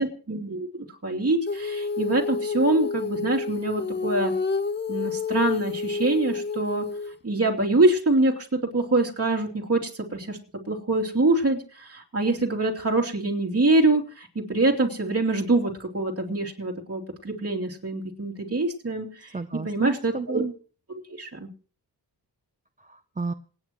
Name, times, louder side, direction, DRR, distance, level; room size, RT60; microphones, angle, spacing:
voice 1, 0.0-4.3 4.9-6.9 7.2-8.5 8.7-10.4 10.7-19.3 19.6-20.4 21.1-21.5, right 2 dB, 35° right, 0 dB, 2.9 m, -25 dB
Female singing, 1.5-7.2, left 4 dB, 25° left, 0.7 m, -29 dB
voice 2, 19.3-20.5 22.8-23.3, right 4 dB, 20° right, 9 dB, 0.6 m, -32 dB
27.0 x 9.4 x 3.0 m, 0.39 s
wide cardioid pair, 105°, 40 cm